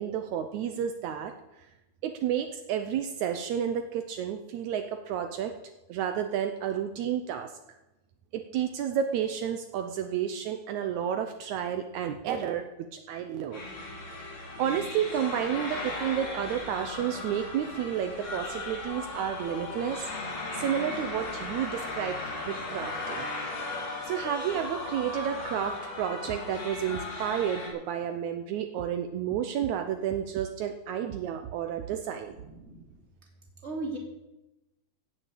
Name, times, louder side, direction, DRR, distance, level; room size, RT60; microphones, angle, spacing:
voice 1, 0.0-1.3 2.0-5.5 5.9-7.5 8.3-13.6 14.3-20.1 20.5-22.2 22.5-23.3 24.1-32.4, right 9 dB, 75° right, 7 dB, 2.0 m, -31 dB
sound 1, 13.5-27.7, left 2 dB, 60° left, 4.1 m, -37 dB
voice 2, 32.4-32.8 33.6-34.0, right 3 dB, 20° right, 0 dB, 2.9 m, -36 dB
15.5 x 7.1 x 8.2 m, 0.98 s
omnidirectional pair, 3.5 m